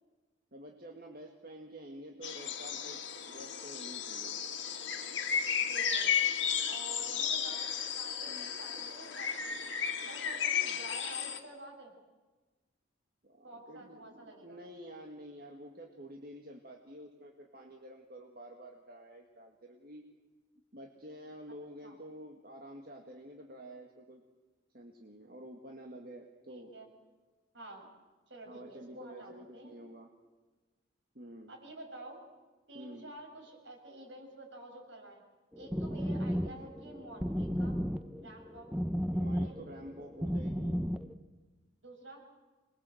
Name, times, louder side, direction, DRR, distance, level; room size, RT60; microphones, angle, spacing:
voice 1, 0.5-3.0 3.3-4.4 8.3-8.6 13.2-20.0 20.7-24.2 24.7-26.7 28.5-30.1 31.1-31.5 32.7-33.1 39.1-40.8, right 1 dB, 50° right, 2 dB, 1.9 m, -49 dB
sound 1, 2.2-11.4, left 7 dB, 70° left, 2.2 m, -34 dB
voice 2, 5.6-6.1 6.7-9.7 10.0-11.9 13.4-14.6 21.8-21.9 26.5-26.9 27.5-27.9 28.3-29.7 31.5-32.2 32.7-35.2 35.5-37.8 38.2-38.7 39.4-39.6 41.8-42.2, right 1 dB, 70° right, 0 dB, 7.0 m, -49 dB
sound 2, 35.5-41.1, equal, 5° right, 0.7 m, -34 dB
26.0 x 21.5 x 7.9 m, 1.3 s
head